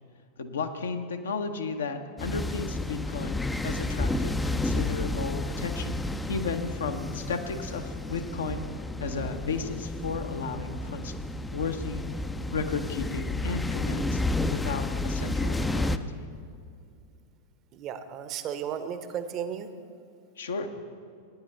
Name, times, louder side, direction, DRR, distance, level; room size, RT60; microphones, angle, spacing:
voice 1, 0.4-6.0 6.3-8.7 9.0-11.1 11.5-12.0 12.5-14.2 14.5-16.3 20.4-20.7, left 4 dB, 65° left, 6 dB, 0.8 m, -34 dB
sound 1, 2.2-16.0, left 2 dB, 10° left, 0.4 m, -31 dB
voice 2, 17.7-19.7, right 8 dB, 35° right, 10 dB, 0.8 m, -34 dB
18.5 x 9.8 x 3.3 m, 2.4 s
figure-of-eight pair, 90°, 0 cm